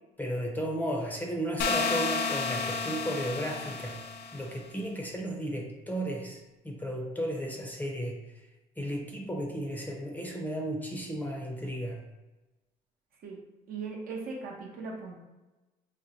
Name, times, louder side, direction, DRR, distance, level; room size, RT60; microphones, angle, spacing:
voice 1, 0.2-4.0 4.3-8.2 8.8-12.0, equal, 10° left, 0 dB, 0.6 m, -34 dB
sound 1, 1.6-4.5, left 4 dB, 70° left, 0.4 m, -31 dB
voice 2, 13.7-15.2, right 4 dB, 60° right, -2 dB, 0.8 m, -38 dB
4.8 x 2.1 x 2.8 m, 1.1 s
cardioid pair, 110°, 17 cm